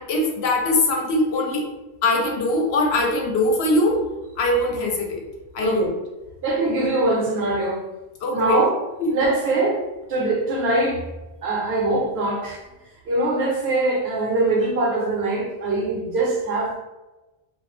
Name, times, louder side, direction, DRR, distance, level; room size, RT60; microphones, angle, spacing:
voice 1, 0.0-1.6 2.0-4.0 4.4-5.3 5.5-5.9 8.2-8.6 9.0-9.1, left 2 dB, 75° left, 0 dB, 0.8 m, -21 dB
voice 2, 6.4-7.8 8.3-8.8 9.1-9.8 10.1-11.1 11.4-12.6 13.1-16.8, right 2 dB, 70° right, -1 dB, 0.9 m, -22 dB
2.3 x 2.0 x 3.0 m, 1.1 s
omnidirectional pair, 1.1 m